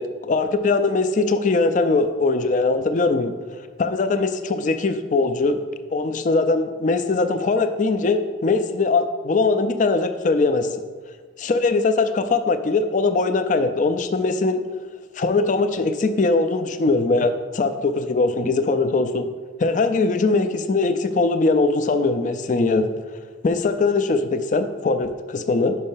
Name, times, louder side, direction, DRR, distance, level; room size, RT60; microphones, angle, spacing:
voice 1, 0.0-3.3 3.8-5.6 5.9-10.7 11.4-14.6 15.1-19.3 19.6-22.9 23.4-25.8, left 3 dB, 40° left, 9 dB, 0.4 m, -21 dB
5.4 x 5.2 x 5.6 m, 1.4 s
head